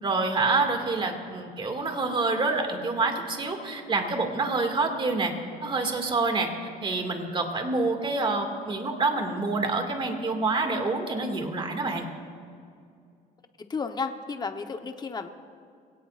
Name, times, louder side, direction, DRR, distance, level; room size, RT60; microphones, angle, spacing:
voice 1, 0.0-5.3 5.6-12.1, right 3 dB, 30° right, 4 dB, 2.2 m, -27 dB
voice 2, 13.7-15.3, left 4 dB, 25° left, 6 dB, 1.0 m, -32 dB
23.5 x 17.5 x 2.5 m, 2.3 s
cardioid pair, 110°, 17 cm